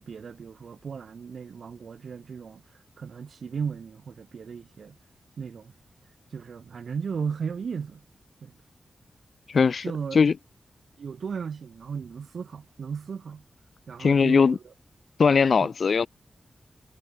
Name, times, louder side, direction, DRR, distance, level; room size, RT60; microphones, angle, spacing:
voice 1, 0.0-2.6 3.0-5.0 5.4-5.7 6.3-8.0 8.4-8.5 9.8-10.2 11.0-13.4 13.9-14.6 15.6-15.7, right 6 dB, 70° right, 4.2 m, -35 dB
voice 2, 9.5-9.8 10.1-10.3 14.0-14.6 15.2-16.1, left 5 dB, 55° left, 0.6 m, -20 dB
wide cardioid pair, 155°, 0 cm